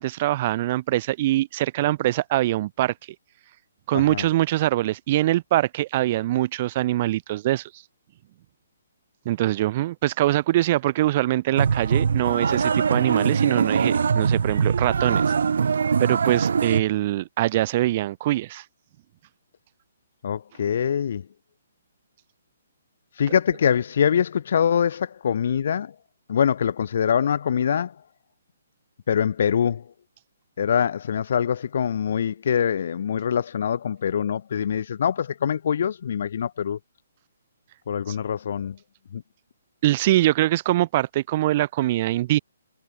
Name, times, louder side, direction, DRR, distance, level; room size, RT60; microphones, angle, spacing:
voice 1, 0.0-2.9 3.9-7.7 9.3-15.2 16.0-18.6 23.3-23.4 38.1-38.2 39.8-42.4, right 15 dB, 25° right, 1.9 m, -23 dB
sound 1, 11.6-16.8, right 6 dB, 65° right, 4.3 m, -22 dB
voice 2, 20.2-21.2 23.2-25.9 26.3-27.9 29.1-29.8 30.6-36.8 37.9-38.8 39.1-39.2, left 8 dB, 45° left, 4.9 m, -24 dB
hypercardioid pair, 175°, 0 cm